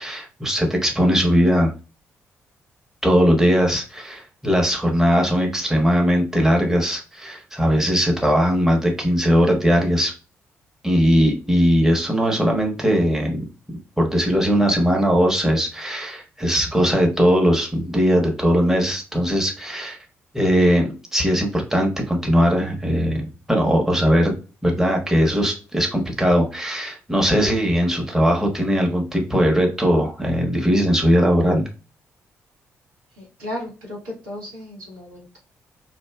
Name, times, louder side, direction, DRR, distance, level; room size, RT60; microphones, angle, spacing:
voice 1, 0.0-1.7 3.0-10.1 10.8-13.4 14.0-20.0 20.3-23.2 23.5-24.3 24.6-31.6, equal, 5° right, 0 dB, 0.9 m, -19 dB
voice 2, 33.2-35.4, left 1 dB, 80° right, -5 dB, 1.0 m, -35 dB
2.5 x 2.2 x 2.2 m, 0.32 s
hypercardioid pair, 40°, 7 cm